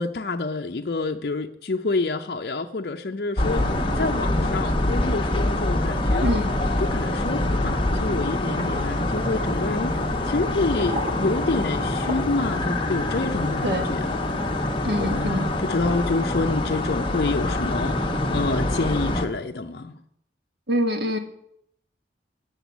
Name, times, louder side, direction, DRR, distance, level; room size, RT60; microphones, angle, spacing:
voice 1, 0.0-6.3 6.8-14.4 15.0-20.0, left 3 dB, 55° left, 3 dB, 0.6 m, -28 dB
sound 1, 3.4-19.3, left 1 dB, 30° left, 1.0 m, -25 dB
sound 2, 8.6-15.7, equal, 50° right, 1.5 m, -40 dB
voice 2, 14.8-15.4 20.7-21.2, equal, 65° right, 6 dB, 1.4 m, -24 dB
8.0 x 7.9 x 8.2 m, 0.73 s
head